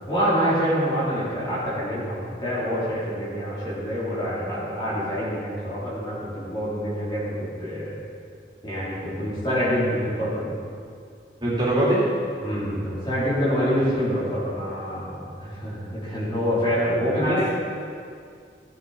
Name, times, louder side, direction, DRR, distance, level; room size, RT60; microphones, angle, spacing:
voice 1, 0.0-7.9 8.6-10.6 12.4-17.4, equal, 25° left, -9 dB, 3.1 m, -26 dB
voice 2, 11.4-12.0 17.2-17.5, right 1 dB, 25° right, -8 dB, 3.4 m, -22 dB
15.5 x 9.1 x 4.1 m, 2.3 s
head